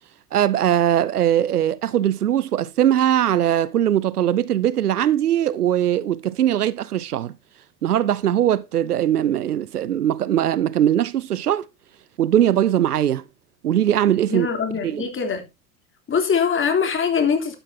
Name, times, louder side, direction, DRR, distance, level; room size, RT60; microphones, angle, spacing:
voice 1, 0.3-7.3 7.8-11.6 12.2-13.2 13.6-14.5 14.8-15.1, right 11 dB, 80° right, 0.7 m, -20 dB
voice 2, 14.3-15.5 16.1-17.6, left 6 dB, 25° left, 3.3 m, -22 dB
12.0 x 10.0 x 2.8 m
figure-of-eight pair, 70°, 45 cm